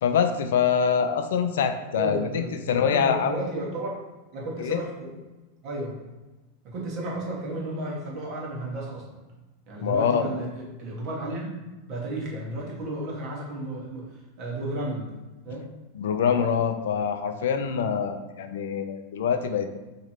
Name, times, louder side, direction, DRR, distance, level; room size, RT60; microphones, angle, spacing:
voice 1, 0.0-3.3 4.6-4.8 9.8-10.2 16.0-19.7, left 7 dB, 70° left, 8 dB, 0.4 m, -25 dB
voice 2, 1.9-4.0 4.3-5.1 5.6-5.9 6.6-9.2 9.7-11.5 11.9-15.1 15.4-15.7, right 1 dB, 50° right, -3 dB, 1.3 m, -33 dB
2.9 x 2.8 x 4.4 m, 1.1 s
hypercardioid pair, 90°, 0 cm